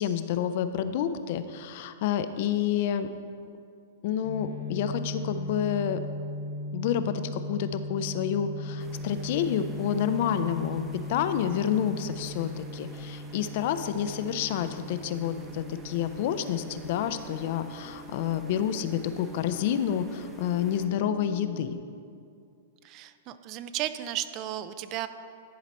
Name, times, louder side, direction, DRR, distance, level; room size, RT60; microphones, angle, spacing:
voice 1, 0.0-3.1 4.0-6.0 6.7-21.8, left 9 dB, 55° left, 11 dB, 0.4 m, -29 dB
sound 1, 4.2-21.7, left 1 dB, 80° left, 1.5 m, -39 dB
sound 2, 8.8-20.9, right 2 dB, 15° right, 0.7 m, -50 dB
voice 2, 22.8-25.1, right 12 dB, 40° right, 12 dB, 0.3 m, -34 dB
10.5 x 4.0 x 4.1 m, 2.4 s
hypercardioid pair, 125°, 0 cm